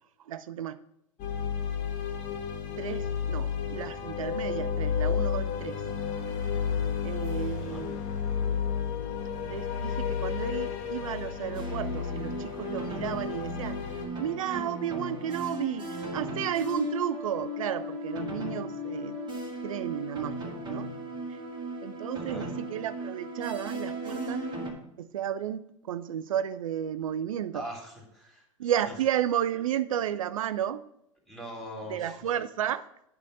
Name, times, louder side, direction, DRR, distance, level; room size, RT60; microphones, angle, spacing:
voice 1, 0.2-0.8 2.8-5.8 7.0-8.0 9.5-19.2 19.6-20.9 21.3-21.4 21.8-24.4 25.0-27.7 28.6-30.8 31.9-32.9, right 10 dB, 85° right, 13 dB, 0.4 m, -33 dB
sound 1, 1.2-14.1, left 7 dB, 45° left, 1.4 m, -32 dB
voice 2, 7.5-7.9 22.3-22.5 27.5-28.7 31.3-32.2, equal, ahead, -2 dB, 2.9 m, -41 dB
sound 2, 11.5-24.7, equal, 25° right, 2.2 m, -36 dB
8.9 x 3.6 x 6.7 m, 0.77 s
hypercardioid pair, 100°, 17 cm